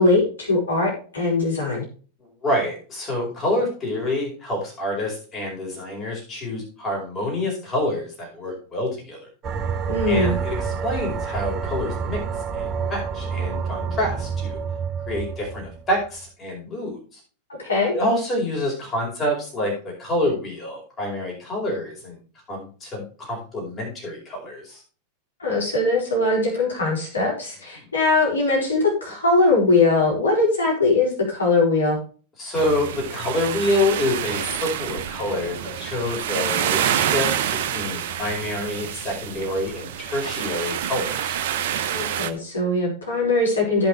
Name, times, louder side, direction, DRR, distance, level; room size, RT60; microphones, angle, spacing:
voice 1, 0.0-1.8 9.9-10.3 17.6-17.9 25.4-32.0 41.9-43.9, left 3 dB, 70° left, -2 dB, 5.1 m, -21 dB
voice 2, 2.2-9.2 10.1-12.2 12.5-14.6 15.1-17.2 17.9-22.2 22.5-24.8 27.8-27.9 32.4-37.3 37.6-41.4, left 1 dB, 25° left, -1 dB, 4.9 m, -27 dB
sound 1, 9.4-16.1, right 6 dB, 30° right, 1.4 m, -28 dB
sound 2, 32.5-42.3, right 10 dB, 55° right, 1.0 m, -27 dB
16.0 x 5.9 x 3.3 m, 0.39 s
figure-of-eight pair, 90°, 0 cm